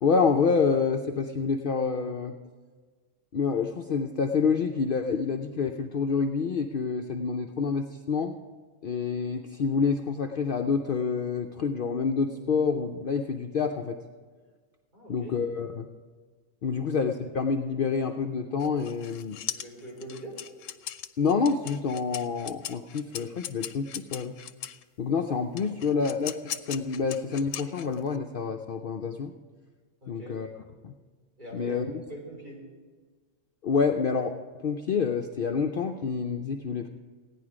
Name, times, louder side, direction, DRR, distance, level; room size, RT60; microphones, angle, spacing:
voice 1, 0.0-2.4 3.3-8.4 8.8-14.0 15.1-15.9 16.6-19.4 21.2-24.4 25.0-26.4 26.7-29.3 30.1-31.0 31.5-32.0 33.6-34.3 34.6-36.9, left 5 dB, 55° left, 4 dB, 0.7 m, -27 dB
voice 2, 14.9-15.3 16.6-16.8 19.5-20.4 30.0-30.4 31.4-31.8 32.1-32.6, right 1 dB, 35° right, -4 dB, 3.8 m, -43 dB
sound 1, 18.6-24.8 25.6-28.2, left 11 dB, 85° left, 0.9 m, -39 dB
16.0 x 10.0 x 4.9 m, 1.5 s
omnidirectional pair, 1.3 m